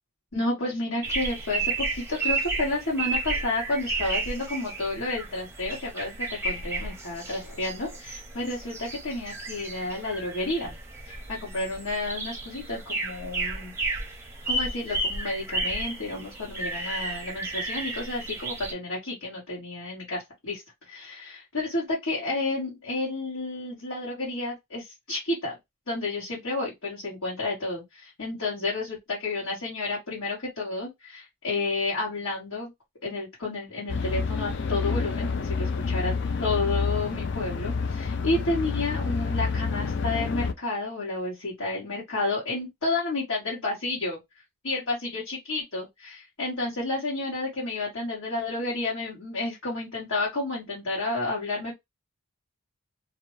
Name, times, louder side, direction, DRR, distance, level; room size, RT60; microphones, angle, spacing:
voice 1, 0.3-10.8 11.0-13.7 14.5-25.5 25.9-32.7 33.0-36.1 36.4-44.2 44.6-51.7, left 2 dB, 75° left, 1.3 m, -31 dB
sound 1, 1.0-18.7, right 2 dB, 10° right, 0.5 m, -33 dB
sound 2, 33.9-40.5, left 4 dB, 50° left, 0.3 m, -28 dB
2.6 x 2.1 x 3.1 m
head